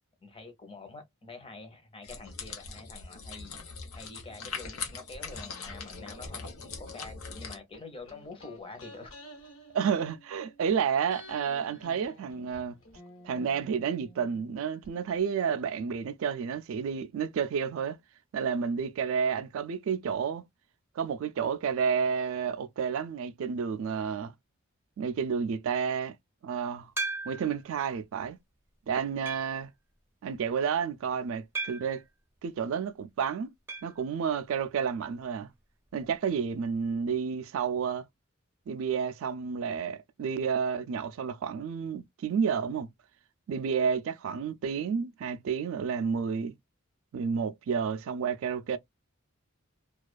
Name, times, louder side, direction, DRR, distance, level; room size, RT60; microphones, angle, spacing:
voice 1, 0.2-3.6 4.0-9.1, left 3 dB, 25° left, 0.7 m, -46 dB
sound 1, 2.0-7.6, left 5 dB, 85° left, 0.7 m, -41 dB
sound 2, 7.7-10.7 11.1-14.9 15.2-15.3, equal, 65° left, 1.1 m, -51 dB
voice 2, 9.7-12.7 13.2-18.0 18.3-20.4 21.0-24.3 25.0-26.1 26.4-26.9 27.3-28.4 28.9-29.7 30.2-32.0 32.4-33.5 33.8-35.5 35.9-38.1 38.7-42.9 43.5-46.5 47.1-48.8, right 6 dB, 70° right, 0.3 m, -30 dB
sound 3, 27.0-27.7 28.3-28.4 29.3-29.7 31.6-32.0 33.7-34.0 34.2-34.3 34.6-34.7 36.7-36.8, right 3 dB, 10° right, 0.5 m, -36 dB
2.3 x 2.3 x 2.3 m
head